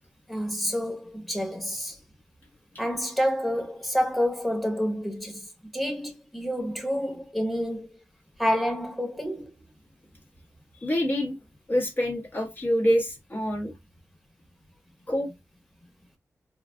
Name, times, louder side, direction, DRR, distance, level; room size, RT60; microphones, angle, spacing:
voice 1, 0.3-2.0 2.8-7.9 8.4-9.5, equal, ahead, 1.0 m, -28 dB
voice 2, 10.8-11.4 11.7-13.7 15.1-15.3, equal, 35° left, 1.0 m, -26 dB
3.9 x 2.4 x 2.2 m
wide cardioid pair, 90°, 5 cm